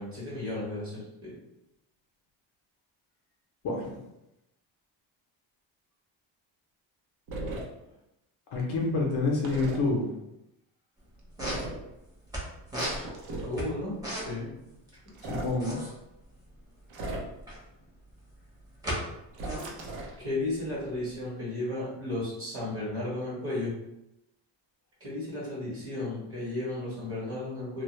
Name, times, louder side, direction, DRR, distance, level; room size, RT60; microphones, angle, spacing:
voice 1, 0.0-1.4 13.5-14.5 20.2-23.7 25.0-27.8, left 2 dB, 30° right, -7 dB, 1.1 m, -34 dB
voice 2, 3.6-4.0 8.5-10.2 15.2-15.8, left 3 dB, 55° left, -1 dB, 0.7 m, -28 dB
sound 1, 7.3-7.6 9.4-9.8 11.4-11.8 12.8-13.6 15.1-15.5 16.9-17.5 19.3-20.2, right 2 dB, 75° right, 0.7 m, -36 dB
sound 2, 11.0-11.1 11.2-12.4 12.7-14.5 14.8-14.9 15.2-17.7 18.2-19.0 19.3-21.2, equal, 10° right, 0.8 m, -36 dB
2.2 x 2.0 x 3.0 m, 0.88 s
cardioid pair, 120°, 46 cm